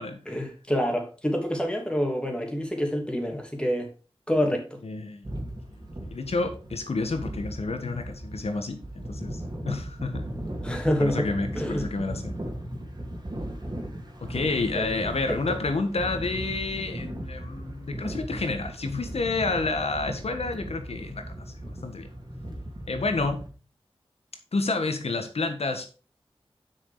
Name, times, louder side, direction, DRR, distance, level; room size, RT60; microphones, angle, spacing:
voice 1, 0.3-3.9 4.3-4.8 10.6-11.3 11.5-11.9 14.7-15.0 15.3-15.4, equal, 10° left, 2.9 m, -27 dB
voice 2, 4.8-5.3 6.1-10.3 11.0-12.4 14.2-21.2 21.8-22.1 22.9-23.4 24.5-25.9, left 3 dB, 80° left, 1.6 m, -29 dB
sound 1, 5.2-23.5, right 1 dB, 40° right, 2.6 m, -37 dB
7.4 x 6.4 x 4.9 m
wide cardioid pair, 55°, 10 cm